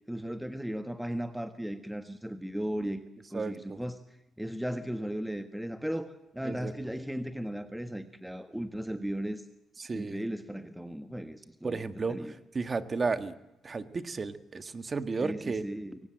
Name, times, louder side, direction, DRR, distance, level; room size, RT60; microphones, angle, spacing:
voice 1, 0.1-3.0 3.3-4.0 4.4-9.4 9.9-11.8 12.1-12.3 15.2-16.0, equal, 5° right, 9 dB, 1.4 m, -36 dB
voice 2, 3.3-3.8 6.4-6.9 9.8-10.2 11.6-12.3 12.5-13.3 13.6-15.6, right 4 dB, 35° right, 11 dB, 1.7 m, -33 dB
22.5 x 18.5 x 8.8 m, 0.92 s
cardioid pair, 90°, 0 cm